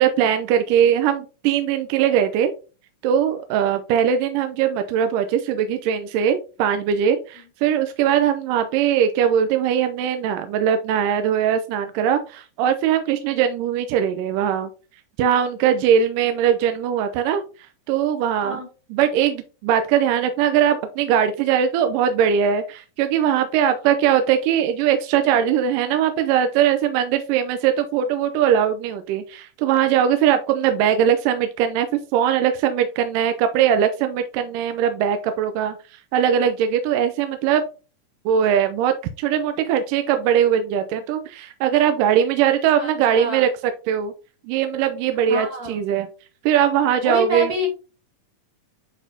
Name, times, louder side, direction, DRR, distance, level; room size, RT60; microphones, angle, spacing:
voice 1, 0.0-2.5 3.0-14.7 15.2-18.6 18.9-37.6 38.3-44.1 44.4-46.1 46.4-47.5, right 9 dB, 80° right, 8 dB, 2.2 m, -20 dB
voice 2, 42.7-43.5 45.3-45.8 47.0-47.7, equal, 30° right, 0 dB, 2.2 m, -27 dB
8.9 x 4.1 x 2.7 m, 0.33 s
omnidirectional pair, 3.9 m